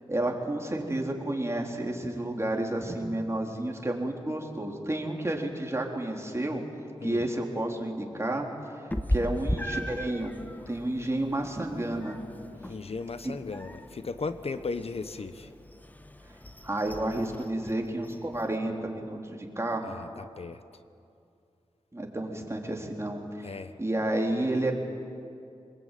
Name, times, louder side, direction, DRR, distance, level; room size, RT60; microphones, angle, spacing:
voice 1, 0.1-6.6 7.0-8.5 9.1-10.3 10.7-12.2 13.2-13.3 16.6-19.9 21.9-24.8, right 1 dB, 25° right, 1 dB, 4.1 m, -31 dB
Meow, 8.9-18.6, equal, 15° left, 1.4 m, -37 dB
voice 2, 12.7-15.5 19.8-20.6 23.4-23.8, left 4 dB, 60° left, 11 dB, 1.0 m, -36 dB
26.0 x 21.0 x 9.4 m, 2.6 s
cardioid pair, 55°, 11 cm